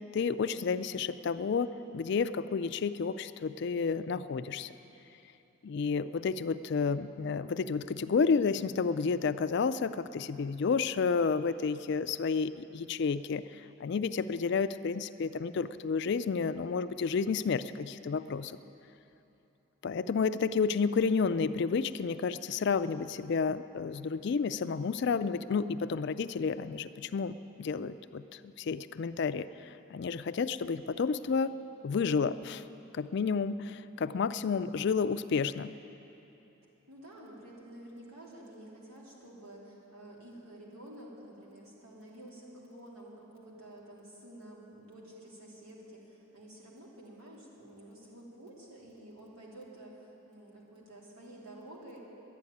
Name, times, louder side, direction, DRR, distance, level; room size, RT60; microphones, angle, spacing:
voice 1, 0.1-4.7 5.6-13.4 13.8-18.6 19.8-31.5 31.8-32.6 32.9-35.7, left 5 dB, 55° left, 13 dB, 0.3 m, -31 dB
voice 2, 36.9-52.0, right 1 dB, 90° right, -4 dB, 3.2 m, -50 dB
11.5 x 9.4 x 9.8 m, 3.0 s
head